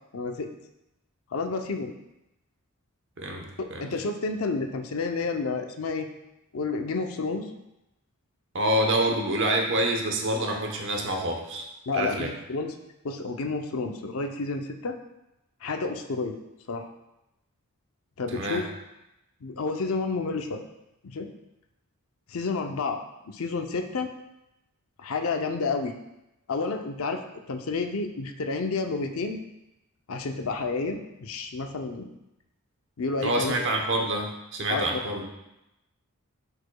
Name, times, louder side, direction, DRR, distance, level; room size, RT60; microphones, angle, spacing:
voice 1, 0.1-0.5 1.3-1.9 3.6-6.1 6.5-7.5 11.9-12.7 13.0-15.0 15.6-16.3 16.7-16.9 18.2-18.7 19.4-20.6 21.0-21.3 22.3-24.1 25.0-25.9 26.5-27.2 27.5-29.4 30.1-32.1 33.0-33.5 34.7-35.0, left 4 dB, 70° left, 5 dB, 0.6 m, -30 dB
voice 2, 8.5-11.7 11.9-12.3 18.3-18.6 33.2-35.3, right 1 dB, 60° right, 2 dB, 0.9 m, -27 dB
10.5 x 4.9 x 2.3 m, 0.91 s
head